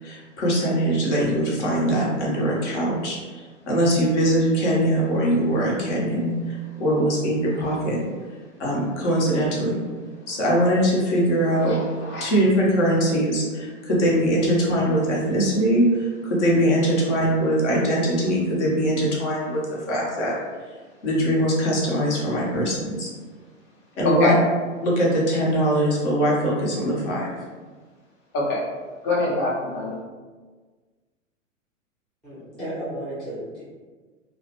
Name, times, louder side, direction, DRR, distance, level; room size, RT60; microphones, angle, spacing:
voice 1, 0.0-8.0 8.6-9.8 10.3-11.7 12.2-20.3 21.0-23.1 24.0-24.3 24.8-27.3, equal, 60° left, -4 dB, 1.0 m, -22 dB
voice 2, 11.7-12.3 24.0-24.3 28.3-28.6 29.0-30.0, left 2 dB, 30° left, -4 dB, 0.7 m, -24 dB
voice 3, 32.2-33.6, right 1 dB, 5° left, -12 dB, 0.3 m, -33 dB
2.5 x 2.1 x 2.9 m, 1.4 s
hypercardioid pair, 110°, 39 cm